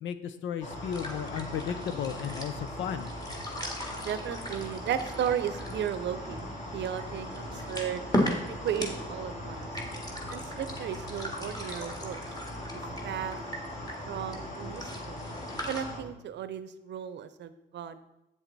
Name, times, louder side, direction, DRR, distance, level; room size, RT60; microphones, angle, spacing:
voice 1, 0.0-3.1, left 8 dB, 70° left, 12 dB, 0.7 m, -34 dB
sound 1, 0.6-16.0, left 1 dB, 35° left, 2.2 m, -40 dB
sound 2, 0.6-15.8, left 1 dB, 20° left, 1.9 m, -38 dB
voice 2, 4.0-6.4 6.7-8.0 8.5-9.7 10.3-12.2 12.7-13.4 14.1-15.2 15.7-18.0, right 9 dB, 65° right, 13 dB, 0.7 m, -35 dB
8.3 x 7.3 x 4.1 m, 0.91 s
cardioid pair, 90°, 20 cm